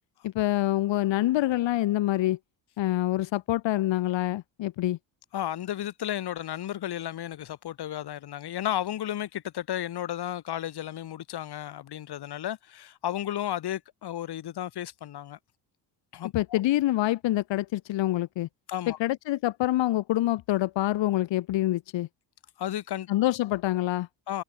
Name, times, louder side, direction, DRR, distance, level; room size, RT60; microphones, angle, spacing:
voice 1, 0.2-2.4 2.8-5.0 16.3-18.5 19.0-22.1 23.1-24.1, left 15 dB, 85° left, 2.3 m, -26 dB
voice 2, 5.3-15.4 16.1-16.6 18.7-19.0 22.6-23.1 24.3-24.4, left 12 dB, 60° left, 2.4 m, -33 dB
cardioid pair, 125°, 43 cm